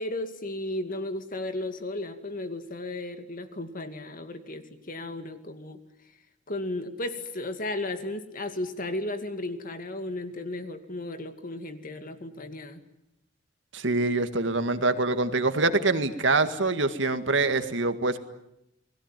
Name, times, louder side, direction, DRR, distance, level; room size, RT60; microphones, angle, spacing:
voice 1, 0.0-5.8 6.5-12.8, left 2 dB, 45° left, 8 dB, 2.4 m, -34 dB
voice 2, 13.7-18.2, right 3 dB, 70° right, 9 dB, 2.0 m, -25 dB
30.0 x 20.5 x 9.1 m, 0.84 s
head